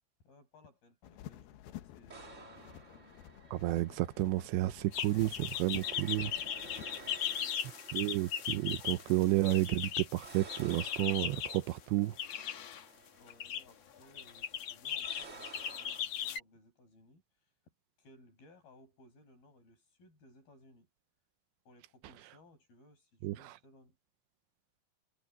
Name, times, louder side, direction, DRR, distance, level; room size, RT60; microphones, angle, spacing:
voice 1, 0.2-3.1 6.6-7.5 13.2-17.7 18.0-20.9 21.6-24.0, left 1 dB, 55° left, 8.6 m, -62 dB
sound 1, 1.0-7.2, left 12 dB, 70° left, 2.8 m, -51 dB
sound 2, 2.1-16.0, right 4 dB, 65° right, 0.7 m, -54 dB
voice 2, 3.5-6.3 7.9-12.1 23.2-23.4, right 17 dB, 85° right, 3.1 m, -31 dB
sound 3, 4.9-11.6 12.2-12.8 13.3-13.6 14.1-16.4, left 9 dB, 90° left, 1.4 m, -38 dB
omnidirectional pair, 5.0 m